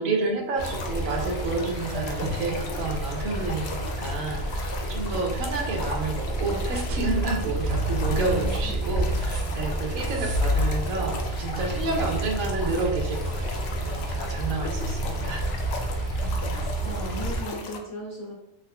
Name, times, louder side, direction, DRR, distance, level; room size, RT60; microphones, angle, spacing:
voice 1, 0.0-15.5, right 3 dB, 80° right, 1 dB, 1.1 m, -30 dB
sound 1, 0.6-17.8, left 3 dB, 65° left, 0.6 m, -37 dB
sound 2, 0.6-17.4, right 1 dB, 55° right, 0.9 m, -29 dB
voice 2, 8.1-8.7 9.9-10.1 16.1-18.3, right 1 dB, 15° left, -6 dB, 0.8 m, -37 dB
3.5 x 3.1 x 2.2 m, 0.87 s
omnidirectional pair, 1.5 m